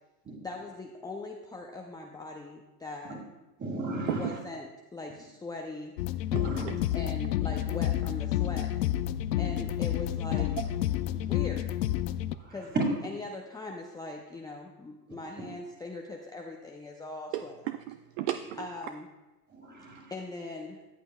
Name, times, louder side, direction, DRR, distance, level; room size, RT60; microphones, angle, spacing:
voice 1, 0.4-3.1 4.2-5.9 6.9-8.7 9.4-10.5 11.1-11.8 12.5-12.7 13.1-17.5 18.6-19.0 20.1-20.8, left 2 dB, 10° left, 0 dB, 0.6 m, -41 dB
voice 2, 3.6-4.4 6.3-6.7 12.3-12.8 15.4-15.5 19.5-20.1, right 2 dB, 20° right, 2 dB, 2.3 m, -34 dB
sound 1, 6.0-12.4, left 13 dB, 90° left, 0.5 m, -30 dB
voice 3, 6.3-6.7 10.6-10.7 11.0-11.3 17.3-18.7, right 13 dB, 55° right, 10 dB, 0.5 m, -35 dB
14.0 x 7.9 x 2.3 m, 1.1 s
hypercardioid pair, 100°, 49 cm